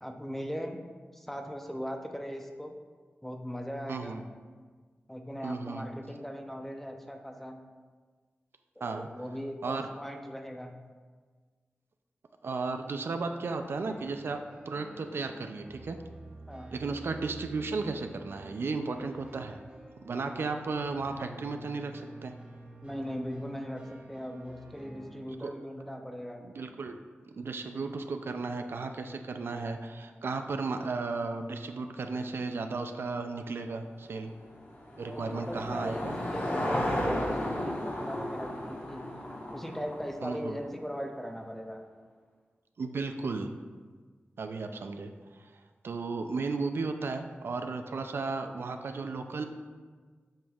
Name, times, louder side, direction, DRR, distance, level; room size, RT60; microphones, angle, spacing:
voice 1, 0.0-0.8 1.1-2.7 3.2-4.2 5.1-7.6 8.8-10.8 16.5-16.7 22.8-26.4 35.0-39.0 39.5-41.9, equal, 5° left, 4 dB, 0.6 m, -39 dB
voice 2, 3.9-4.2 5.4-5.9 8.8-9.1 9.6-9.9 12.4-16.0 16.7-19.6 20.0-22.3 25.4-25.5 26.4-27.0 27.2-34.3 35.0-36.1 40.2-40.6 42.8-43.6 44.4-49.4, right 3 dB, 70° right, 6 dB, 0.4 m, -34 dB
sound 1, 13.7-25.3, right 2 dB, 30° right, 1.0 m, -49 dB
Car passing by / Engine, 34.1-40.6, left 1 dB, 55° left, 1.2 m, -34 dB
7.7 x 5.2 x 2.4 m, 1.5 s
wide cardioid pair, 75°, 4 cm